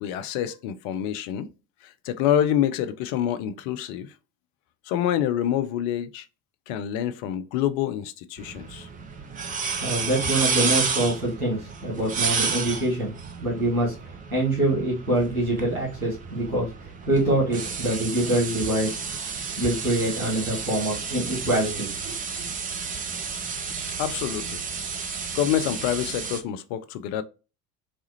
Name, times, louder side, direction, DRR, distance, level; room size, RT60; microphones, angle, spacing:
voice 1, 0.0-1.5 1.8-4.1 4.9-6.3 6.7-8.9 24.0-24.6 25.3-27.2, left 10 dB, 45° left, 0.5 m, -27 dB
sound 1, 8.4-26.4, right 5 dB, 20° right, 0.5 m, -31 dB
voice 2, 9.8-13.1 13.4-18.9 19.6-21.9, right 1 dB, 85° right, 1.6 m, -25 dB
4.2 x 2.3 x 2.7 m
figure-of-eight pair, 65°, 42 cm